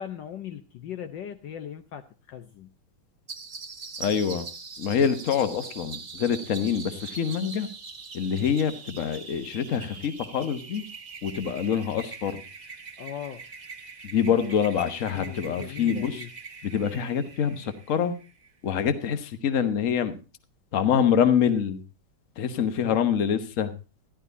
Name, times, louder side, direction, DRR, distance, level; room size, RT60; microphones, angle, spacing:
voice 1, 0.0-2.7 5.0-5.2 13.0-13.4 15.1-16.3 22.6-23.0, left 9 dB, 70° left, 9 dB, 1.4 m, -39 dB
sound 1, 3.3-18.5, right 4 dB, 30° right, 0.9 m, -43 dB
voice 2, 4.0-4.5 4.8-7.7 8.1-10.8 11.2-12.4 14.0-16.2 16.6-18.1 18.6-20.1 20.7-21.8 22.4-23.7, left 7 dB, 45° left, 10 dB, 1.3 m, -25 dB
13.0 x 11.5 x 4.0 m, 0.32 s
omnidirectional pair, 2.2 m